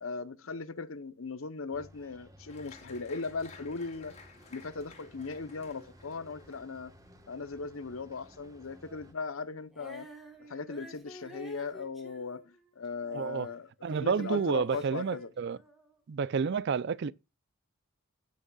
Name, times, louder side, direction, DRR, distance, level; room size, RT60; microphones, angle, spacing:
voice 1, 0.0-4.1 4.5-6.9 7.3-10.1 10.4-13.7 14.0-15.3, left 4 dB, 85° left, 0.8 m, -38 dB
sound 1, 1.7-9.1, equal, 15° right, 1.3 m, -56 dB
Applause, 2.5-9.6 9.8-10.6 11.0-11.1 11.4-11.8, left 4 dB, 35° left, 2.2 m, -57 dB
Female singing, 9.7-16.0, equal, ahead, 2.3 m, -52 dB
voice 2, 13.1-13.5 13.8-15.6 16.1-17.1, right 6 dB, 55° right, 0.4 m, -30 dB
16.5 x 6.4 x 2.3 m
head